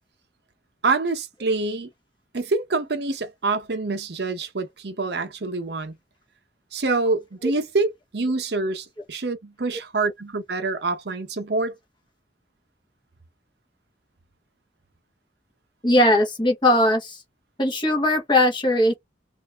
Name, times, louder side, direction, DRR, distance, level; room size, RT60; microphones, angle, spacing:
voice 1, 0.8-1.9 2.3-5.9 6.7-11.8, right 3 dB, 65° right, 0.8 m, -26 dB
voice 2, 15.8-17.2 17.6-18.9, left 1 dB, 25° left, 1.3 m, -19 dB
3.1 x 2.7 x 3.5 m
head